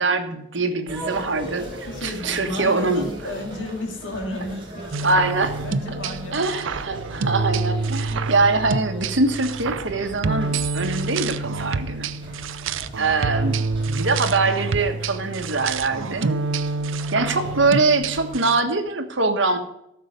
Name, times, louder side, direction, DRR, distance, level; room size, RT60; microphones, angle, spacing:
voice 1, 0.0-3.1 5.0-5.5 6.3-12.1 13.0-13.6 13.9-16.5 17.1-19.6, right 3 dB, 65° right, 6 dB, 1.4 m, -23 dB
sound 1, 0.9-18.4, right 1 dB, 25° right, 3.3 m, -40 dB
voice 2, 1.9-5.3 5.6-6.5, left 1 dB, 70° left, 1 dB, 2.4 m, -33 dB
sound 2, 4.9-18.6, right 3 dB, 80° right, 0.6 m, -27 dB
13.5 x 6.7 x 5.2 m, 0.80 s
head